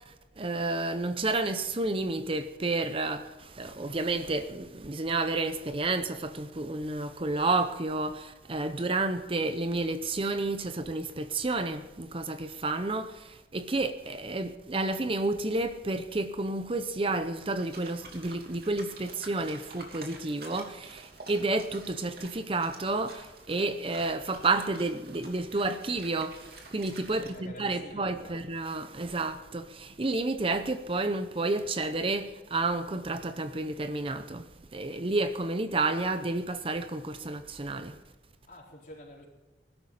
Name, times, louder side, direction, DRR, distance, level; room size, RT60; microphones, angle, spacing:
voice 1, 0.4-3.2 3.6-13.1 13.5-21.0 21.3-23.2 23.5-26.3 26.7-34.4 34.7-37.9, right 2 dB, 30° right, 0.7 m, -30 dB
sound 1, 17.6-27.3, right 3 dB, 60° right, 2.9 m, -49 dB
voice 2, 27.1-28.4 38.5-39.3, left 1 dB, 50° left, 4.4 m, -48 dB
20.0 x 12.5 x 4.2 m
head